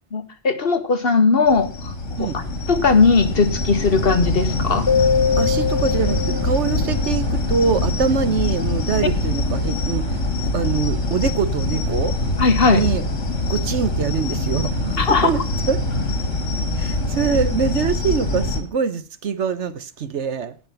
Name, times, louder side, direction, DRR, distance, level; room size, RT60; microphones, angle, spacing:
voice 1, 0.1-1.9 2.2-2.3 2.7-4.9 12.4-12.8 15.0-15.3, left 4 dB, 50° left, 1.4 m, -18 dB
sound 1, 1.5-18.6, left 2 dB, 70° left, 2.4 m, -24 dB
sound 2, 4.9-7.1, left 6 dB, 30° left, 0.5 m, -22 dB
voice 2, 5.4-10.2 10.5-12.2 12.7-13.1 13.5-15.4 15.7-15.8 16.7-20.5, right 6 dB, 65° right, 1.2 m, -24 dB
17.5 x 6.0 x 5.7 m
omnidirectional pair, 1.3 m